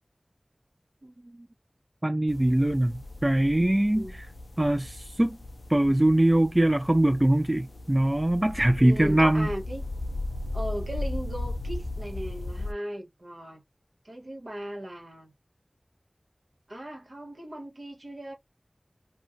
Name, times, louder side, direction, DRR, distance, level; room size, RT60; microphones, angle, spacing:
voice 1, 1.0-1.5 3.9-4.4 8.8-9.8 10.5-13.6 14.0-15.3 16.7-18.3, right 1 dB, 85° right, 1.1 m, -37 dB
voice 2, 2.0-2.9 3.2-4.1 4.6-5.4 5.7-9.5, right 1 dB, 30° right, 0.3 m, -22 dB
sound 1, 2.3-12.7, left 2 dB, 70° left, 0.3 m, -36 dB
2.5 x 2.1 x 2.6 m
wide cardioid pair, 40°, 0 cm